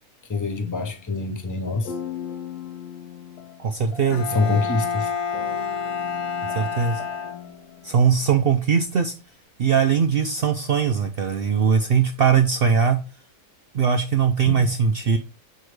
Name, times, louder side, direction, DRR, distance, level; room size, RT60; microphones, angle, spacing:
voice 1, 0.3-1.9 4.3-5.1 14.5-14.7, left 3 dB, 25° left, 0.4 m, -25 dB
sound 1, 0.8-1.2 1.8-4.6 5.3-8.5, left 7 dB, 90° left, 1.3 m, -39 dB
voice 2, 3.6-4.6 6.4-7.0 7.8-9.1 9.6-13.0 13.7-15.2, right 6 dB, 80° right, 0.5 m, -20 dB
Bowed string instrument, 4.1-7.8, left 6 dB, 70° left, 1.1 m, -29 dB
6.4 x 4.6 x 3.2 m
omnidirectional pair, 1.6 m